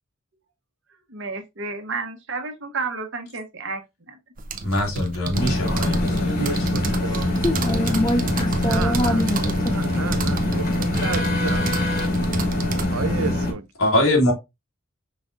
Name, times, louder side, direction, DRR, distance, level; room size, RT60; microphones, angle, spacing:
voice 1, 1.1-3.8 4.1-4.2, right 4 dB, 60° right, 1.1 m, -31 dB
sound 1, 4.4-12.9, right 3 dB, 40° right, 0.7 m, -30 dB
voice 2, 4.6-6.5 13.8-14.3, left 1 dB, 80° left, 1.8 m, -22 dB
sound 2, 5.3-13.5, left 1 dB, 45° left, 1.3 m, -24 dB
voice 3, 6.2-7.3 8.7-11.7 12.9-13.7, right 5 dB, 85° right, 0.6 m, -32 dB
voice 4, 7.1-9.7, left 1 dB, 20° left, 0.5 m, -25 dB
5.2 x 3.7 x 2.5 m
head